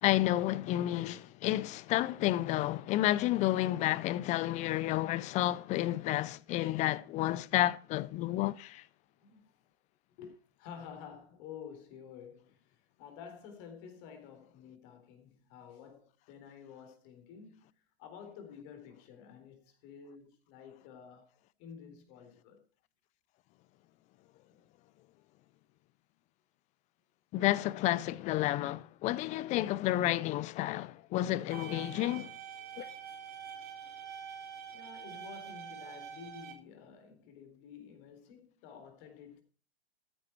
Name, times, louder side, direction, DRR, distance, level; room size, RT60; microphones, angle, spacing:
voice 1, 0.0-8.8 27.3-32.3 32.8-32.9, left 15 dB, 25° left, 0.5 m, -31 dB
voice 2, 9.2-9.5 10.2-17.6 18.0-21.3 21.6-22.6 24.5-24.6 34.7-39.4, left 7 dB, 40° left, 4.0 m, -51 dB
sound 1, 31.5-36.5, right 8 dB, 30° right, 2.9 m, -46 dB
14.0 x 9.9 x 4.6 m
hypercardioid pair, 120°, 31 cm